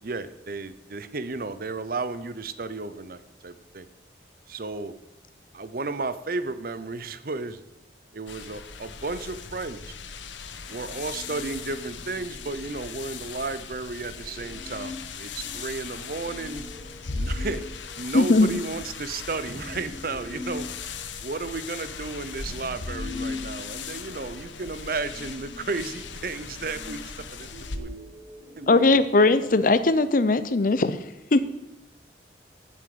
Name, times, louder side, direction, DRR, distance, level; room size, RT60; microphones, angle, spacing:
voice 1, 0.0-3.9 4.5-4.9 5.5-7.6 8.1-9.9 10.7-16.7 17.1-20.7 21.2-27.0 27.3-27.5 27.7-28.0 28.6-29.0, right 3 dB, 50° right, 13 dB, 0.7 m, -33 dB
sound 1, 8.3-27.8, left 4 dB, 90° left, 0.9 m, -38 dB
sound 2, 10.7-29.8, left 2 dB, 30° right, 1.8 m, -44 dB
voice 2, 18.1-18.5 28.7-31.0 31.3-31.4, left 3 dB, 45° left, 13 dB, 0.6 m, -19 dB
8.8 x 7.6 x 7.9 m, 0.93 s
head